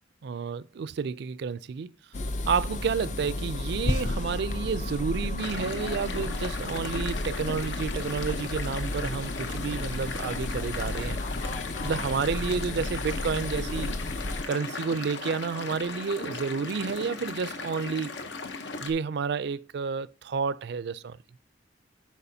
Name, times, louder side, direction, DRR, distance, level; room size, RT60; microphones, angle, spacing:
voice 1, 0.2-1.9 2.5-13.9 14.5-18.1 18.8-21.2, right 5 dB, 65° right, 0.4 m, -30 dB
sound 1, 2.1-14.4, left 2 dB, 40° left, 0.5 m, -33 dB
sound 2, 5.4-18.9, left 4 dB, 75° left, 0.9 m, -37 dB
11.0 x 4.7 x 2.7 m
head